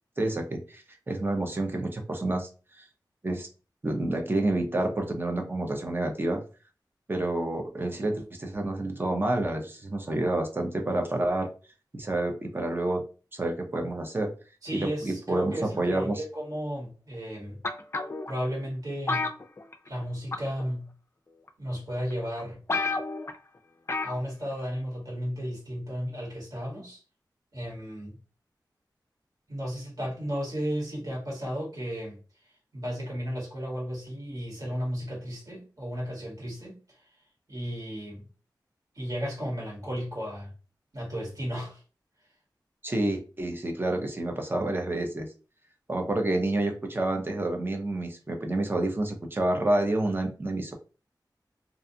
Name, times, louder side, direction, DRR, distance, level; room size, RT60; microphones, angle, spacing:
voice 1, 0.2-2.5 2.8-2.9 3.2-3.5 3.8-6.4 7.1-11.5 11.9-13.0 13.3-14.3 14.7-16.2 42.8-45.3 45.9-50.7, right 2 dB, 30° right, 0.6 m, -29 dB
voice 2, 14.6-17.6 18.3-19.3 19.9-20.9 21.6-22.6 24.0-27.0 27.5-28.2 29.5-32.2 32.7-37.0 37.5-38.2 38.9-40.5 40.9-41.8, equal, 50° right, 1.5 m, -34 dB
sound 1, 17.6-18.3 19.1-20.0 20.3-20.6 21.5-21.6 22.1-22.2 22.4-22.5 22.7-23.4 23.9-24.2 24.5-24.6, left 3 dB, 35° left, 0.4 m, -30 dB
2.4 x 2.4 x 2.7 m
wide cardioid pair, 90°, 8 cm